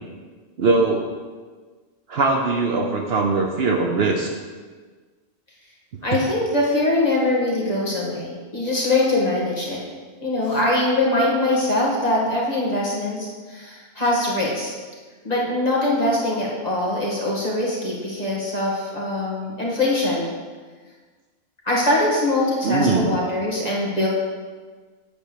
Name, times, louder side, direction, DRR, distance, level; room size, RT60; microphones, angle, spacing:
voice 1, 0.6-1.1 2.1-4.3 6.1-6.2 22.6-23.2, right 3 dB, 60° right, 2 dB, 0.9 m, -21 dB
voice 2, 6.0-9.8 10.2-14.7 15.2-20.3 21.7-24.1, left 1 dB, 30° left, -4 dB, 1.8 m, -22 dB
8.4 x 4.4 x 6.6 m, 1.4 s
omnidirectional pair, 1.3 m